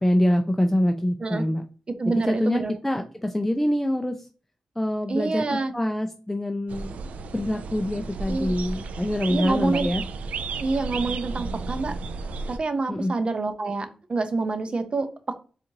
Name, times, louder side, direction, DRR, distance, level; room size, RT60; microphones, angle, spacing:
voice 1, 0.0-1.6 2.0-4.3 4.8-7.0 7.3-10.0 12.9-13.1, left 1 dB, 10° left, 5 dB, 0.4 m, -25 dB
voice 2, 2.0-2.7 5.1-5.7 8.3-8.5 9.3-9.9 10.6-11.9 12.4-15.4, right 3 dB, 45° right, 9 dB, 0.6 m, -27 dB
sound 1, 6.7-12.6, right 4 dB, 85° right, 0.3 m, -33 dB
4.4 x 2.5 x 2.7 m, 0.37 s
cardioid pair, 65°, 2 cm